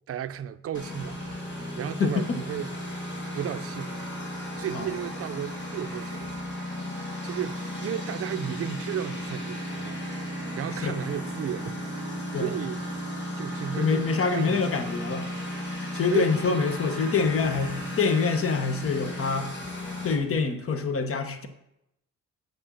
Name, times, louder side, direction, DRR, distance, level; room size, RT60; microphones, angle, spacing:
voice 1, 0.1-1.2 1.8-2.8 3.3-4.1 4.5-6.4 7.2-10.1 10.6-12.8 13.4-14.1 14.3-14.6 16.1-16.6, right 10 dB, 50° right, 0.5 m, -34 dB
Engine, 0.7-20.1, equal, 70° left, 3.0 m, -35 dB
voice 2, 2.0-2.4 4.7-4.9 10.8-11.0 12.3-12.5 13.8-15.3 15.9-19.5 20.0-21.5, left 5 dB, 45° left, 1.1 m, -26 dB
7.6 x 7.1 x 6.2 m
cardioid pair, 90°, 30 cm